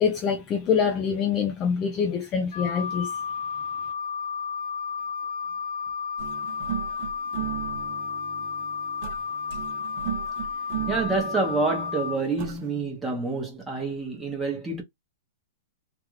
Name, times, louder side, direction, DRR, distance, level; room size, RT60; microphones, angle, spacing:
voice 1, 0.0-3.2, left 6 dB, 20° left, 0.3 m, -25 dB
Wind instrument woodwind instrument, 2.5-12.2, left 6 dB, 55° left, 1.1 m, -32 dB
sound 1, 6.2-12.7, right 11 dB, 35° right, 0.5 m, -36 dB
voice 2, 10.9-14.8, right 3 dB, 5° right, 0.9 m, -27 dB
2.9 x 2.5 x 3.1 m
supercardioid pair, 170°, 0 cm